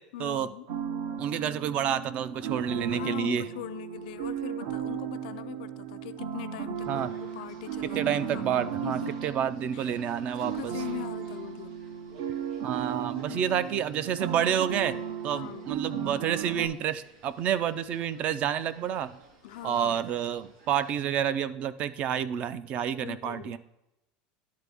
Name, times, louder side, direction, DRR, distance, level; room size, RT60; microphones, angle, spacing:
voice 1, 0.1-0.7 2.9-8.5 8.8-9.1 9.7-10.0 10.4-11.8 13.2-13.7 15.3-15.8 19.4-20.1 23.0-23.6, left 15 dB, 85° left, 0.4 m, -41 dB
sound 1, 0.7-16.7, right 8 dB, 60° right, 0.7 m, -35 dB
voice 2, 1.2-3.4 6.9-7.1 7.9-10.7 12.6-15.0 15.2-19.2 19.6-23.6, right 9 dB, 30° right, 0.3 m, -29 dB
sound 2, 6.7-21.0, right 2 dB, 90° right, 1.7 m, -56 dB
11.0 x 4.1 x 3.4 m
supercardioid pair, 170°, 4 cm